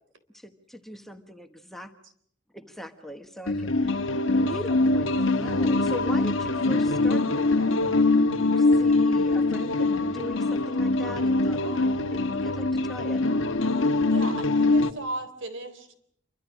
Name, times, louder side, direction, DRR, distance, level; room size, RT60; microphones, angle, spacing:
voice 1, 0.3-1.9 2.5-13.2, equal, ahead, 6 dB, 1.3 m, -41 dB
sound 1, 3.5-14.9, left 2 dB, 85° left, 1.4 m, -23 dB
voice 2, 14.1-16.0, right 2 dB, 75° right, 10 dB, 3.8 m, -36 dB
28.5 x 24.5 x 6.3 m, 0.65 s
head